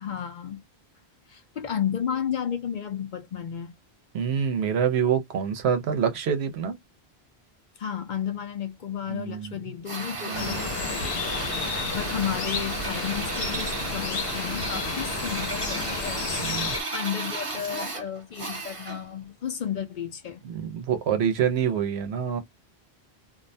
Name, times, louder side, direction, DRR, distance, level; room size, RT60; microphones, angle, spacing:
voice 1, 0.0-0.6 1.3-3.7 7.8-11.4 11.9-16.3 16.9-20.4, left 9 dB, 55° left, 0.6 m, -33 dB
voice 2, 4.1-6.8 9.1-9.5 10.3-10.7 16.4-16.8 20.4-22.4, right 7 dB, 90° right, 0.9 m, -26 dB
Drill, 9.9-19.1, right 3 dB, 35° right, 0.7 m, -34 dB
sound 1, 10.3-16.8, left 4 dB, 80° left, 1.0 m, -31 dB
2.5 x 2.1 x 2.6 m
omnidirectional pair, 1.0 m